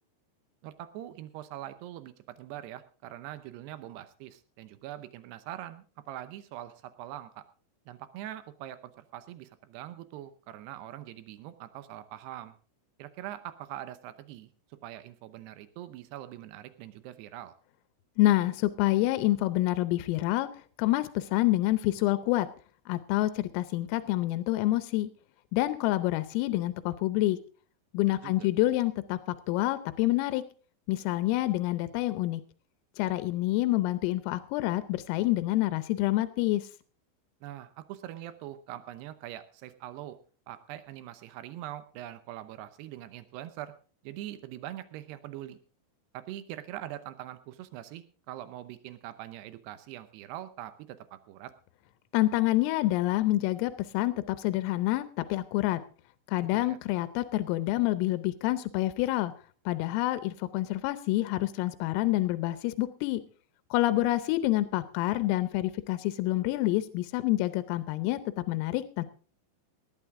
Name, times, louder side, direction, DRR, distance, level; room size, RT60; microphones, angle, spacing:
voice 1, 0.6-7.4 7.9-12.5 13.0-14.5 14.8-17.5 28.0-28.5 37.4-40.2 40.5-43.7 44.0-45.6 46.1-51.5 56.5-56.8, right 13 dB, 85° right, 12 dB, 2.4 m, -43 dB
voice 2, 18.2-22.5 22.9-25.1 25.5-27.4 27.9-29.2 29.5-30.4 30.9-32.4 33.0-36.7 52.1-55.8 56.3-59.3 59.7-63.2 63.7-68.2 68.5-69.0, left 16 dB, 90° left, 12 dB, 3.5 m, -27 dB
19.0 x 11.5 x 3.6 m, 0.39 s
omnidirectional pair, 5.8 m